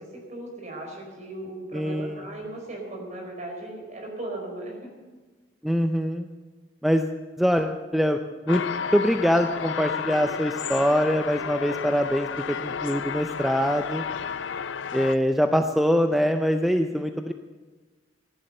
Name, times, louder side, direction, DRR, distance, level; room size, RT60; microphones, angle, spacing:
voice 1, 0.0-4.9, right 1 dB, 40° right, 1 dB, 4.8 m, -37 dB
voice 2, 1.7-2.2 5.6-6.3 6.8-8.2 8.5-8.6 8.9-14.0 14.9-17.3, equal, ahead, 6 dB, 0.5 m, -23 dB
sound 1, 8.5-15.2, left 6 dB, 85° left, 0.6 m, -32 dB
15.0 x 11.0 x 6.8 m, 1.3 s
head